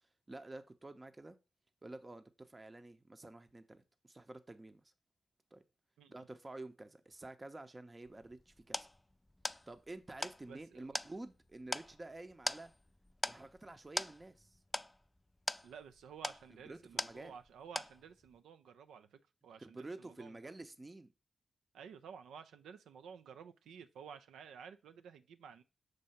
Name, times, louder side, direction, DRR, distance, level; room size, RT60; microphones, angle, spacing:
voice 1, 0.0-1.4 1.8-4.9 5.5-5.6 6.1-8.9 9.7-12.7 13.2-14.6 16.5-17.3 19.6-21.1, right 2 dB, 30° right, 0.7 m, -50 dB
sound 1, 8.1-17.5 17.8-18.3, left 1 dB, 15° left, 0.3 m, -42 dB
voice 2, 10.5-11.0 15.6-20.5 21.7-25.6, right 7 dB, 85° right, 0.3 m, -53 dB
6.4 x 2.7 x 5.6 m
supercardioid pair, 40°, 0 cm